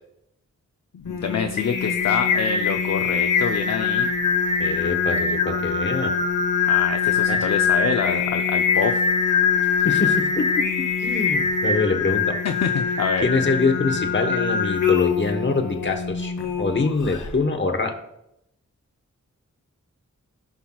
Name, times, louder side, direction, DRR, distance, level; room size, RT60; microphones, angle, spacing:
voice 1, 0.9-4.1 6.6-9.0 12.4-13.3, left 6 dB, 60° left, 6 dB, 0.5 m, -26 dB
Singing, 1.1-17.3, left 5 dB, 75° left, 1.1 m, -23 dB
voice 2, 4.6-6.1 7.3-7.4 9.8-12.4 13.2-17.9, left 3 dB, 40° left, 4 dB, 1.2 m, -25 dB
16.0 x 5.8 x 2.3 m, 0.81 s
wide cardioid pair, 100°, 31 cm